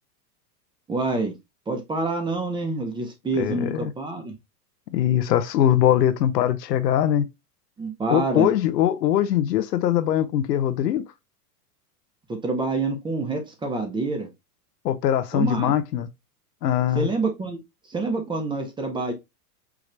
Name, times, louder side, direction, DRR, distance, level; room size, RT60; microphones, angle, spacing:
voice 1, 0.9-1.3 1.7-4.3 7.8-8.5 12.3-14.3 15.3-15.7 17.0-17.6 17.9-19.1, right 3 dB, 10° right, 0.7 m, -27 dB
voice 2, 3.4-3.9 4.9-7.3 8.1-11.0 14.8-16.1 16.6-17.1, left 11 dB, 85° left, 0.8 m, -22 dB
4.8 x 2.5 x 3.2 m
hypercardioid pair, 130°, 48 cm